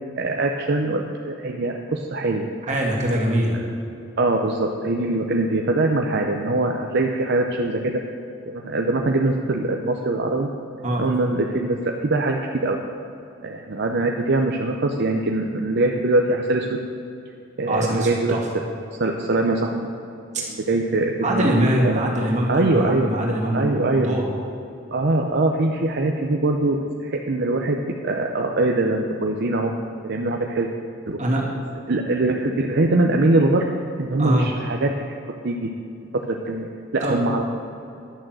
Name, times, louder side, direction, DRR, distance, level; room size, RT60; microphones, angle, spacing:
voice 1, 0.2-2.5 4.2-8.0 8.5-10.5 11.0-12.8 13.4-16.8 17.6-18.3 19.0-19.9 20.5-22.1 22.5-23.1 23.5-24.1 24.9-29.7 30.0-30.7 31.1-31.2 31.9-33.6 34.0-34.9 35.4-37.4, right 2 dB, 60° right, 2 dB, 0.7 m, -22 dB
voice 2, 2.7-3.6 10.8-11.0 17.7-18.4 21.2-24.3 31.2-31.4 34.2-34.5 37.0-37.2, right 1 dB, 40° right, -3 dB, 2.4 m, -23 dB
11.5 x 6.4 x 7.6 m, 2.7 s
head